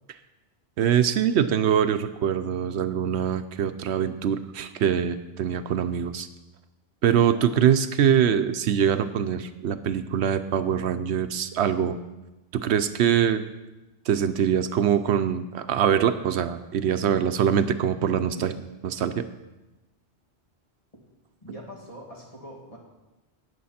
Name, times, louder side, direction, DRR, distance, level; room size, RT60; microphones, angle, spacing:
voice 1, 0.8-6.3 7.0-12.0 12.5-13.4 14.1-18.5 18.8-19.3, right 8 dB, 80° right, 10 dB, 0.9 m, -23 dB
voice 2, 21.4-22.8, equal, 30° left, -2 dB, 2.5 m, -43 dB
18.0 x 7.0 x 4.3 m, 1.1 s
omnidirectional pair, 1.1 m